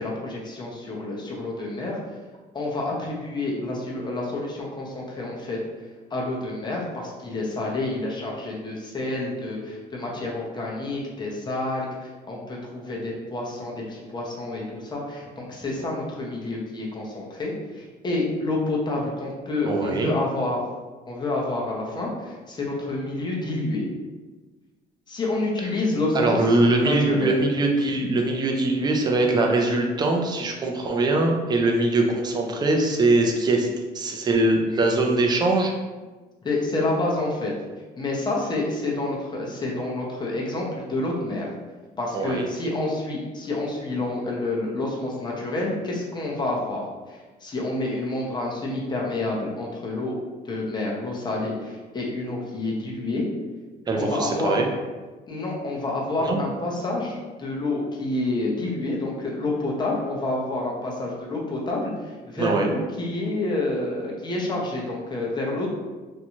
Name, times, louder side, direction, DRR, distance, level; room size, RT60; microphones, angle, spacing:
voice 1, 0.0-2.0 2.5-5.6 6.1-20.6 21.1-23.8 25.1-27.4 36.4-37.5 38.0-41.5 42.0-46.8 47.1-50.2 50.4-53.2 54.0-54.6 55.3-65.7, left 2 dB, 25° left, -3 dB, 0.7 m, -28 dB
voice 2, 19.6-20.1 26.1-33.7 33.9-35.7 42.1-42.5 53.9-54.7 56.2-56.4 62.4-62.7, right 2 dB, 25° right, 1 dB, 0.4 m, -22 dB
2.6 x 2.2 x 2.9 m, 1.3 s
cardioid pair, 110°, 17 cm